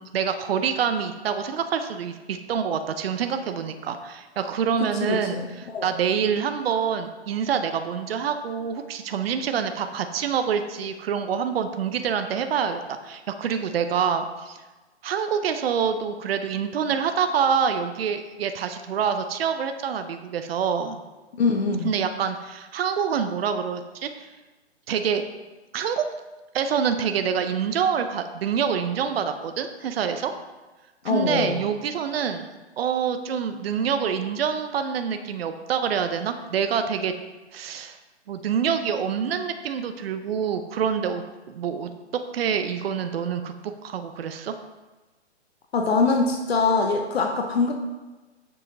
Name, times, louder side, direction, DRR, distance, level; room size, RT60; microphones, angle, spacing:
voice 1, 0.0-14.6 15.0-21.0 21.8-24.3 24.9-25.2 25.7-26.1 26.5-30.3 31.0-32.5 32.8-37.1 37.5-38.0 38.3-41.9 42.3-44.5, right 7 dB, 60° right, 8 dB, 0.7 m, -26 dB
voice 2, 4.8-5.5 5.7-5.9 21.4-21.9 31.0-31.6 45.7-47.7, left 4 dB, 60° left, 3 dB, 0.9 m, -23 dB
7.1 x 5.7 x 3.9 m, 1.2 s
hypercardioid pair, 140°, 34 cm